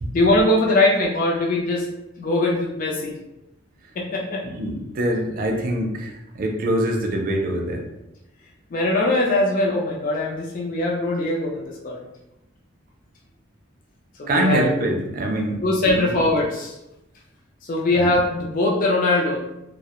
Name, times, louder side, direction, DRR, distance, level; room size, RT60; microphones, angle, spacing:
voice 1, 0.1-1.9 2.2-3.1 4.0-4.5 8.7-12.0 14.2-14.7 15.6-16.7 17.6-19.4, left 2 dB, 40° left, -2 dB, 0.4 m, -21 dB
voice 2, 4.5-7.8 14.3-15.6 15.9-16.1 17.9-18.0, right 1 dB, 45° right, 1 dB, 0.4 m, -24 dB
2.3 x 2.0 x 2.8 m, 0.91 s
head